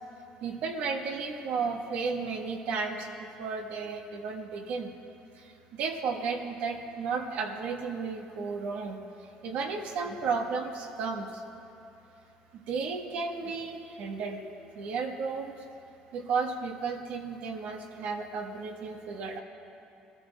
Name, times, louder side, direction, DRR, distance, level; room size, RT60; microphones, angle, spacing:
voice 1, 0.4-4.9 5.4-9.0 9.4-11.4 12.7-14.4 14.7-15.5 16.1-19.4, right 4 dB, 70° right, 3 dB, 1.3 m, -33 dB
21.0 x 13.0 x 2.3 m, 2.8 s
cardioid pair, 105°, 3 cm